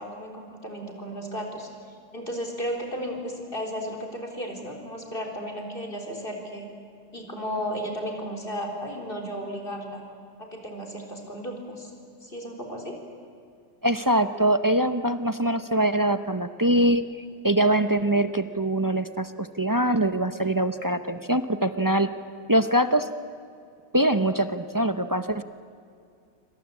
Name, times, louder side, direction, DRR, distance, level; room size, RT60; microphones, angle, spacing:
voice 1, 0.0-6.7 7.1-10.0 10.4-11.9 12.2-13.0, equal, 30° left, 2 dB, 4.2 m, -34 dB
voice 2, 13.8-17.0 17.4-22.1 22.5-23.1 23.9-25.4, right 1 dB, 25° right, 10 dB, 0.4 m, -23 dB
27.5 x 25.5 x 8.4 m, 2.4 s
omnidirectional pair, 1.7 m